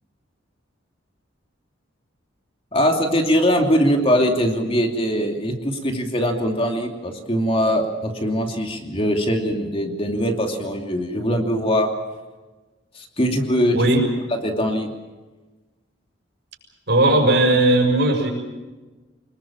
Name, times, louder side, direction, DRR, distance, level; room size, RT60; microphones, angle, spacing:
voice 1, 2.7-11.9 12.9-13.8 14.4-14.9, equal, 30° left, 3 dB, 2.8 m, -21 dB
voice 2, 13.7-14.0 16.9-18.3, right 1 dB, 60° right, 3 dB, 6.5 m, -17 dB
25.5 x 21.5 x 7.3 m, 1.2 s
head